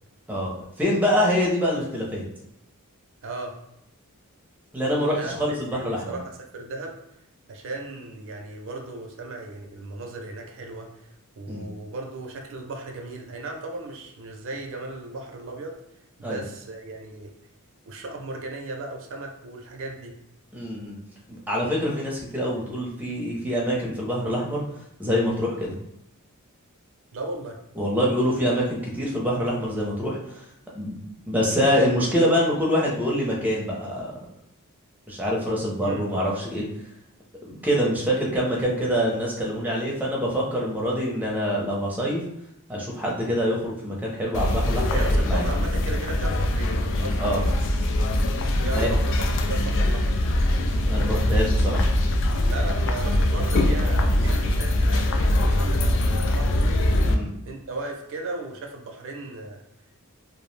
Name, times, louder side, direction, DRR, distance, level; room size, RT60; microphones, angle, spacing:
voice 1, 0.3-2.2 4.7-6.2 11.5-11.7 16.2-16.4 20.5-21.0 21.3-24.6 25.0-25.7 27.8-30.4 30.7-31.0 31.2-34.2 35.1-36.7 37.4-42.2 42.7-45.5 47.2-47.4 48.7-48.9 50.9-51.9 57.0-57.3, equal, 5° right, -4 dB, 0.5 m, -25 dB
voice 2, 3.2-3.6 5.2-6.9 7.5-15.8 16.2-17.3 17.9-20.1 27.1-27.6 35.8-36.1 44.9-47.5 48.6-50.1 52.4-55.0 55.4-56.6 57.5-59.6, right 2 dB, 60° right, 2 dB, 0.4 m, -36 dB
sound 1, 44.3-57.2, left 1 dB, 55° left, 0.3 m, -22 dB
2.5 x 2.0 x 3.1 m, 0.81 s
head